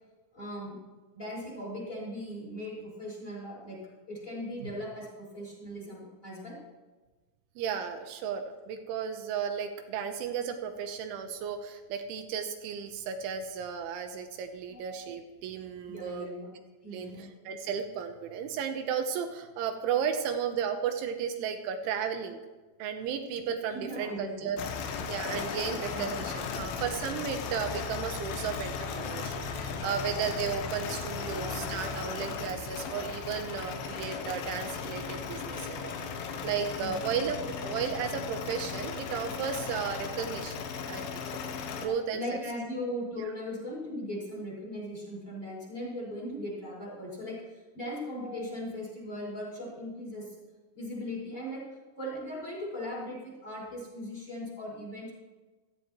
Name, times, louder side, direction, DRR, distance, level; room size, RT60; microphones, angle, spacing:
voice 1, 0.3-0.8 1.1-6.6 14.7-15.1 15.9-16.5 16.8-17.5 23.3-24.7 25.7-26.3 31.2-31.6 36.8-37.3 41.8-50.3 50.7-51.7 52.0-55.1, equal, 15° left, -4 dB, 5.1 m, -39 dB
voice 2, 7.6-16.3 16.9-22.4 22.8-24.6 25.1-41.2 41.8-42.2, right 7 dB, 85° right, 5 dB, 3.1 m, -34 dB
sound 1, 24.6-41.9, left 6 dB, 80° left, 3.5 m, -36 dB
16.5 x 13.5 x 3.1 m, 1.2 s
omnidirectional pair, 5.6 m